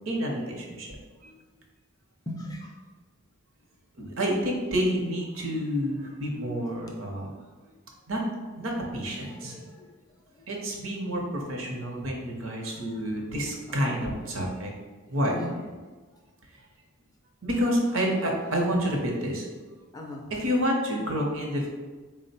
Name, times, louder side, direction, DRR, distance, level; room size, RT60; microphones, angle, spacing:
voice 1, 0.1-0.9 1.2-1.3 4.0-7.3 8.1-8.2 8.6-9.5 10.5-14.7 15.1-15.3 17.4-19.5 20.3-21.7, equal, 60° right, 0 dB, 0.7 m, -29 dB
voice 2, 2.3-2.7 9.3-9.9 10.3-10.5 12.6-13.0 13.7-14.0 15.2-15.6 19.9-20.3, left 1 dB, 15° left, 0 dB, 0.4 m, -39 dB
3.9 x 2.1 x 4.1 m, 1.3 s
head